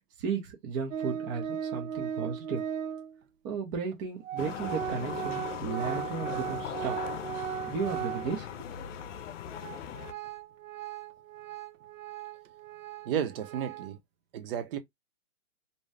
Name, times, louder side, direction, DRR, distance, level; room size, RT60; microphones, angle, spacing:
voice 1, 0.2-2.6 3.4-7.0 7.6-8.7, right 5 dB, 20° right, 0.4 m, -34 dB
Organ, 0.9-3.2 3.9-4.0 4.2-8.6 9.0-9.1 9.6-14.0, right 9 dB, 85° right, 0.6 m, -37 dB
sound 1, 4.4-10.1, left 10 dB, 65° left, 0.6 m, -39 dB
voice 2, 13.0-14.0 14.3-14.8, right 9 dB, 45° right, 0.8 m, -32 dB
2.6 x 2.2 x 3.2 m
hypercardioid pair, 135°, 39 cm